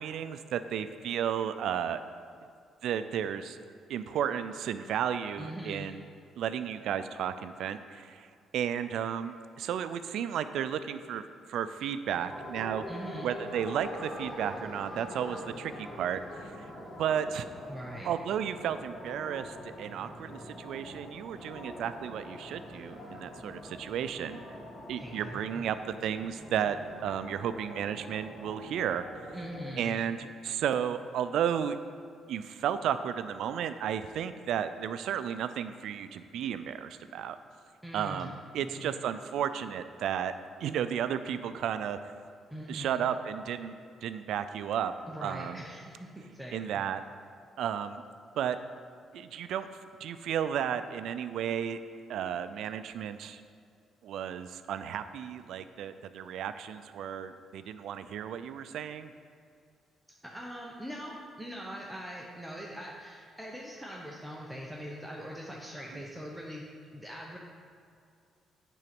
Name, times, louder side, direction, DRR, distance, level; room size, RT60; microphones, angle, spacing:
voice 1, 0.0-2.0 2.8-3.6 3.9-6.0 6.4-8.3 8.5-11.2 11.5-12.8 13.2-16.2 17.0-17.5 18.0-24.4 24.9-29.2 29.8-31.8 32.3-37.4 37.9-40.3 40.6-42.0 42.7-43.7 44.0-44.9 45.2-45.6 46.5-47.0 47.6-48.0 48.4-48.6 49.1-49.7 50.0-51.8 52.1-53.4 54.0-59.1 65.9-66.0, right 9 dB, 75° right, 11 dB, 0.4 m, -33 dB
voice 2, 5.4-5.9 12.9-13.3 17.7-18.1 25.0-25.6 29.3-30.0 37.8-38.3 38.6-38.9 42.5-43.0 45.1-46.8 60.2-66.6 66.9-67.4, equal, 5° right, -3 dB, 0.8 m, -42 dB
sound 1, 12.3-29.8, equal, 35° left, 1.8 m, -44 dB
8.9 x 3.9 x 6.0 m, 2.3 s
cardioid pair, 90°, 0 cm